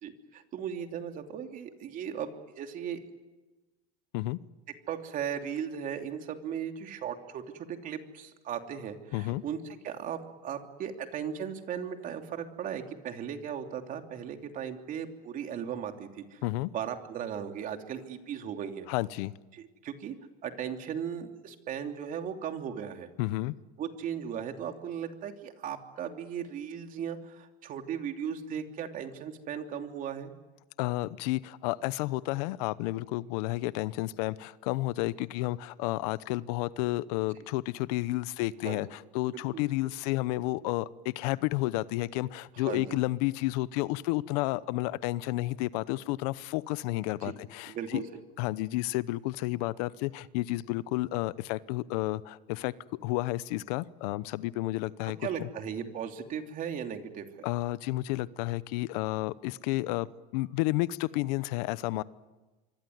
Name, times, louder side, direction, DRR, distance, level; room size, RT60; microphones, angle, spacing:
voice 1, 0.0-2.3 2.6-3.0 4.9-16.4 16.7-18.9 19.5-20.1 20.4-23.1 23.8-30.3 38.6-38.8 39.3-39.6 42.6-43.0 47.2-47.3 47.7-48.2 55.2-57.5, right 8 dB, 40° right, 5 dB, 3.0 m, -37 dB
voice 2, 9.1-9.4 16.4-16.7 18.9-19.3 23.2-23.5 30.8-48.1 48.4-52.7 53.0-55.5 57.4-60.1 60.3-62.0, left 19 dB, 70° left, 18 dB, 0.9 m, -31 dB
26.5 x 24.0 x 9.5 m, 1.2 s
supercardioid pair, 125°, 20 cm